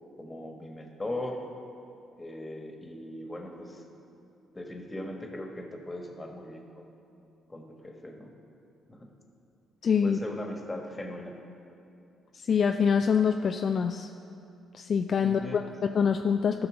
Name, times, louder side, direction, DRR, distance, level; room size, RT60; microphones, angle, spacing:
voice 1, 0.2-1.4 2.2-3.8 4.5-6.9 7.5-8.4 8.9-9.1 10.0-11.3 15.2-15.6, left 1 dB, 20° left, 2 dB, 1.5 m, -39 dB
voice 2, 9.8-10.2 12.5-14.1 14.7-16.7, left 6 dB, 55° left, 6 dB, 0.3 m, -25 dB
14.0 x 5.9 x 3.8 m, 2.7 s
hypercardioid pair, 55°, 0 cm